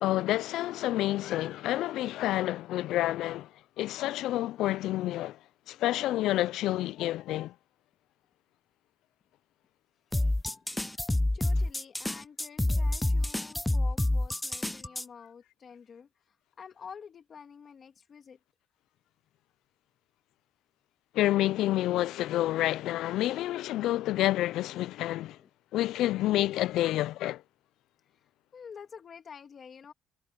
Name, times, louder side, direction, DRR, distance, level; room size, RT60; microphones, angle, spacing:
voice 1, 0.0-3.5 3.8-5.4 5.7-7.5 21.1-25.4 25.7-27.4, left 15 dB, 80° left, 0.3 m, -29 dB
voice 2, 10.1-10.8 11.2-16.1 16.6-18.4 25.4-25.5 28.5-29.9, left 6 dB, 40° left, 2.9 m, -49 dB
sound 1, 10.1-15.0, left 1 dB, 5° left, 0.4 m, -28 dB
cardioid pair, 145°, 0 cm